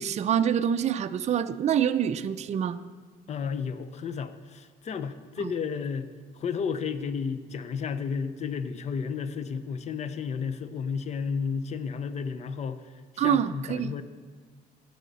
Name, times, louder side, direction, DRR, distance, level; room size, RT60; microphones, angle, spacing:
voice 1, 0.0-2.8 5.4-5.5 13.2-13.9, right 9 dB, 40° right, 10 dB, 0.5 m, -26 dB
voice 2, 3.3-6.1 6.4-12.8 13.1-14.0, left 6 dB, 40° left, 11 dB, 0.7 m, -32 dB
17.5 x 6.5 x 4.1 m, 1.5 s
cardioid pair, 110°, 17 cm